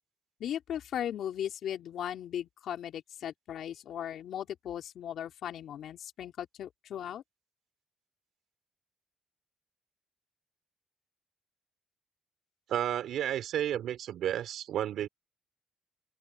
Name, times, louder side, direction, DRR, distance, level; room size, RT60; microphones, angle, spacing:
voice 1, 0.4-7.2, left 10 dB, 70° left, 3.3 m, -37 dB
voice 2, 12.7-15.1, right 11 dB, 75° right, 4.2 m, -32 dB
open air
cardioid pair, 90°, 0 cm